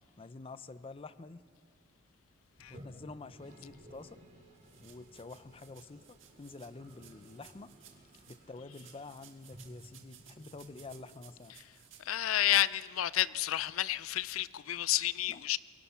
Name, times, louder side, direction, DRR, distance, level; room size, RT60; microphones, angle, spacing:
voice 1, 0.2-1.4 2.7-4.2 4.8-7.7 8.3-11.6 15.3-15.5, left 3 dB, 25° left, 0.5 m, -48 dB
Toilet flush, 2.5-11.6, equal, 45° right, 4.4 m, -56 dB
sound 1, 4.5-8.4 8.7-12.2, right 10 dB, 65° right, 1.9 m, -59 dB
voice 2, 12.1-15.6, left 13 dB, 85° left, 0.4 m, -30 dB
23.5 x 23.0 x 5.7 m
head